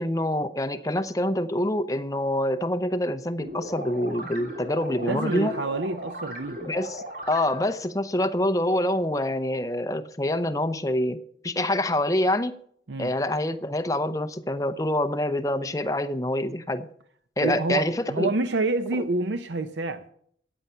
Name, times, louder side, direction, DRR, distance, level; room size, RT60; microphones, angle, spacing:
voice 1, 0.0-5.5 6.6-11.2 11.4-12.6 13.0-16.9 17.4-18.3, left 1 dB, 20° left, 0.7 m, -26 dB
sound 1, 3.4-7.8, right 1 dB, 50° right, 3.1 m, -38 dB
voice 2, 5.0-6.6 12.9-13.1 17.4-20.0, right 3 dB, 90° right, 0.7 m, -28 dB
14.0 x 9.2 x 5.6 m
head